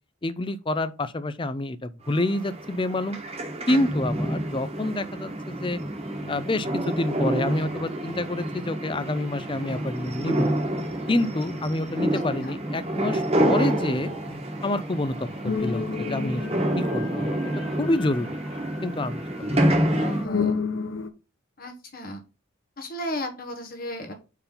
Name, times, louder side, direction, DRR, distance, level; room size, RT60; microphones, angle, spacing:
voice 1, 0.2-3.2 3.7-5.8 6.3-10.5 11.1-14.1 14.6-17.4 17.8-18.3 18.8-19.7, left 1 dB, 25° left, 0.5 m, -28 dB
sound 1, 2.1-20.2, right 1 dB, 30° right, 1.3 m, -28 dB
sound 2, 5.4-18.6, left 1 dB, ahead, 1.5 m, -45 dB
voice 2, 12.1-12.5 20.0-20.7 21.6-22.2 22.8-24.1, left 1 dB, 45° left, 1.3 m, -35 dB
sound 3, 15.4-19.0 19.4-21.1, left 5 dB, 65° left, 0.7 m, -31 dB
5.2 x 4.7 x 5.5 m
head